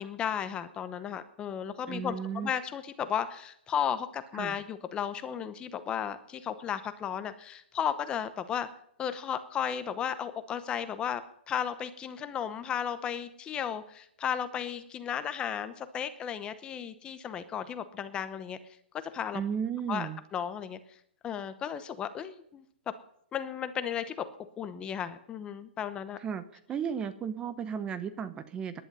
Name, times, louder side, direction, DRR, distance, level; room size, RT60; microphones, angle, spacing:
voice 1, 0.0-8.7 9.0-11.2 11.5-18.6 19.1-19.4 19.9-20.8 21.2-22.7 23.3-24.3 24.6-26.2, left 8 dB, 15° left, 12 dB, 0.8 m, -34 dB
voice 2, 1.9-2.5 4.3-4.6 19.3-20.2 26.2-26.4 26.7-28.8, right 7 dB, 15° right, 12 dB, 0.8 m, -34 dB
19.0 x 11.0 x 5.5 m, 0.69 s
hypercardioid pair, 155°, 6 cm